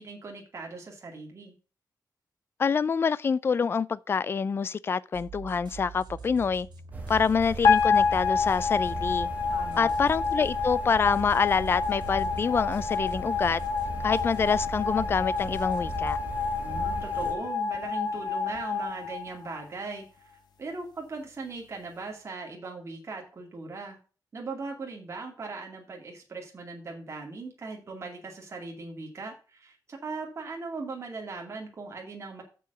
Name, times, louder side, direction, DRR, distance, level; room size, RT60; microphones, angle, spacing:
voice 1, 0.0-1.5 9.5-9.9 16.6-20.1 20.6-24.0 24.3-32.4, right 3 dB, 40° right, 2.3 m, -39 dB
voice 2, 2.6-6.7 7.1-9.3 9.8-13.6 14.0-16.2, left 6 dB, 30° left, 0.3 m, -26 dB
sound 1, 5.1-16.4, right 5 dB, 90° right, 2.4 m, -44 dB
sound 2, 6.9-17.3, right 2 dB, 20° right, 1.7 m, -39 dB
sound 3, 7.6-19.9, left 5 dB, 75° left, 1.8 m, -28 dB
6.9 x 6.1 x 6.7 m
wide cardioid pair, 170°, 7 cm